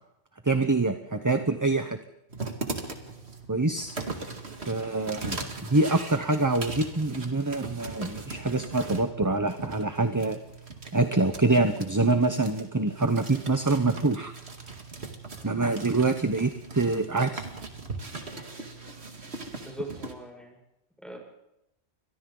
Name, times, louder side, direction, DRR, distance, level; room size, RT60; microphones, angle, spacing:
voice 1, 0.4-2.0 3.5-4.0 4.7-10.4 10.9-14.3 15.4-17.4, right 3 dB, 20° right, 8 dB, 0.9 m, -25 dB
sound 1, 2.3-20.1, right 3 dB, 70° right, 2.4 m, -39 dB
voice 2, 19.6-20.5 21.0-21.2, right 1 dB, ahead, 0 dB, 6.2 m, -41 dB
30.0 x 24.5 x 3.9 m, 0.85 s
omnidirectional pair, 1.1 m